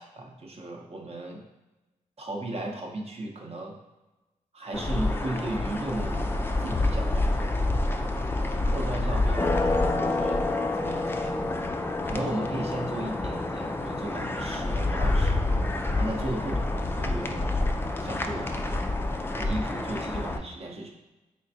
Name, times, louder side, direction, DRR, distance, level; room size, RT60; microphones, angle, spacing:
voice 1, 0.0-1.4 2.2-3.7 4.5-6.2 6.6-7.5 8.6-10.4 10.7-11.4 12.0-15.4 16.0-17.5 18.0-18.8 19.4-20.9, right 1 dB, 45° right, 1 dB, 0.7 m, -35 dB
Suzdal Cathedral of the Nativity, 4.7-20.4, left 2 dB, 15° left, 0.3 m, -27 dB
3.7 x 3.3 x 2.6 m, 1.1 s
cardioid pair, 65°, 14 cm